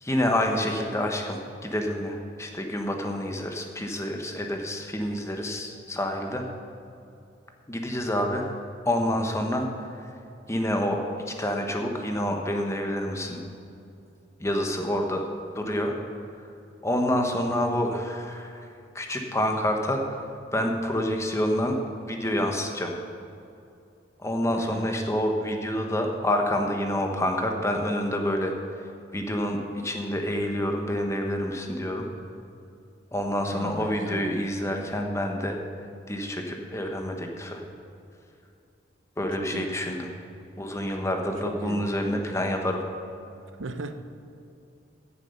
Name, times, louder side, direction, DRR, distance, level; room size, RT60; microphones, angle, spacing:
voice 1, 0.0-6.4 7.7-8.5 8.8-9.9 10.5-13.4 14.4-15.3 15.5-15.9 16.8-18.7 18.9-20.3 20.5-21.8 22.1-23.0 24.2-28.5 29.1-32.1 33.1-35.6 36.1-37.6 39.2-40.0 40.6-42.8, left 1 dB, 15° left, 3 dB, 1.2 m, -28 dB
voice 2, 24.5-24.9 33.5-34.3 39.3-39.7 41.4-41.9 43.6-43.9, right 2 dB, 80° right, 9 dB, 0.8 m, -37 dB
16.0 x 7.1 x 5.6 m, 2.6 s
head